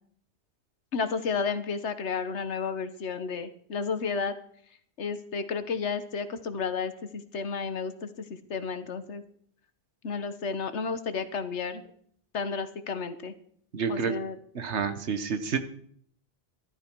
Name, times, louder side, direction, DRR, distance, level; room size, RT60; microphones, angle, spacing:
voice 1, 0.9-4.3 5.0-9.2 10.0-11.8 12.3-13.3 13.9-14.4, left 5 dB, 85° left, 11 dB, 1.4 m, -32 dB
voice 2, 13.7-14.1 14.5-15.6, right 6 dB, 80° right, 10 dB, 1.4 m, -29 dB
14.0 x 12.5 x 4.6 m, 0.62 s
omnidirectional pair, 1.1 m